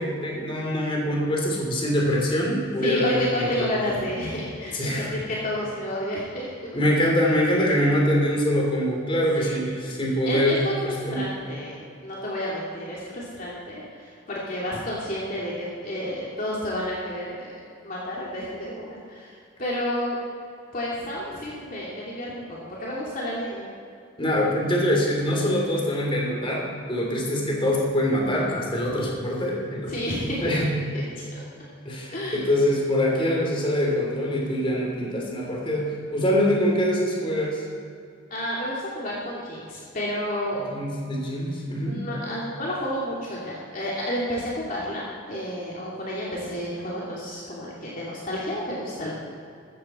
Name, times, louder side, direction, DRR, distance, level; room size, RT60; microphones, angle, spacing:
voice 1, 0.0-3.7 4.7-5.1 6.7-11.3 24.2-29.9 30.4-30.9 31.8-37.6 40.7-42.1, equal, 25° left, -2 dB, 3.3 m, -24 dB
voice 2, 2.8-6.5 9.3-9.7 10.2-17.5 17.8-20.2 20.7-23.7 29.9-30.6 30.9-31.0 31.3-31.4 32.1-32.4 38.3-40.7 41.8-49.1, equal, 45° left, -6 dB, 2.7 m, -31 dB
14.5 x 14.5 x 4.4 m, 2.3 s
head